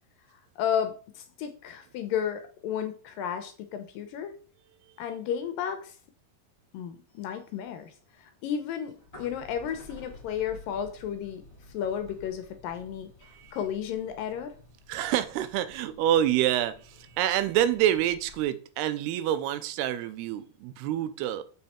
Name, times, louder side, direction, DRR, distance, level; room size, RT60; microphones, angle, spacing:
voice 1, 0.6-4.4 5.0-5.9 6.7-7.9 8.2-11.4 11.7-13.1 13.5-14.5, left 8 dB, 75° left, 2.3 m, -33 dB
sound 1, 7.1-18.4, left 2 dB, 20° left, 1.8 m, -52 dB
voice 2, 14.9-21.4, right 11 dB, 85° right, 2.7 m, -27 dB
7.4 x 5.5 x 4.3 m
omnidirectional pair, 4.5 m